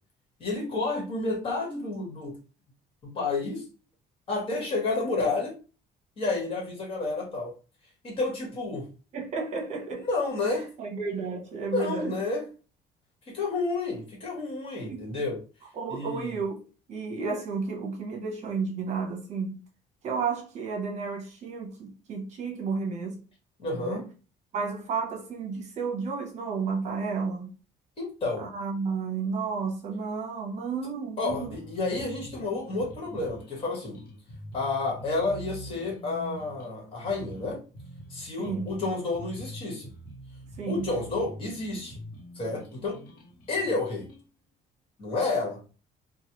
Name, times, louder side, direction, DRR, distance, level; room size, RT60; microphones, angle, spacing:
voice 1, 0.4-2.3 3.0-3.6 4.3-5.5 6.2-7.5 8.0-8.8 10.0-10.7 11.7-12.4 13.3-15.4 15.9-16.4 23.6-24.0 28.0-28.5 31.2-34.0 34.5-37.6 38.1-39.9 40.7-42.0 42.3-43.0 43.5-44.1 45.0-45.6, left 3 dB, 35° left, 1.4 m, -30 dB
voice 2, 9.1-10.1 10.8-12.2 14.9-15.0 15.7-16.6 16.9-19.6 20.0-23.2 23.7-24.0 24.5-27.5 28.4-31.6 38.4-38.9 40.6-40.9, right 5 dB, 45° right, 0.9 m, -32 dB
sound 1, 31.3-44.2, equal, 65° left, 0.9 m, -45 dB
3.2 x 2.2 x 2.9 m
cardioid pair, 160°, 16 cm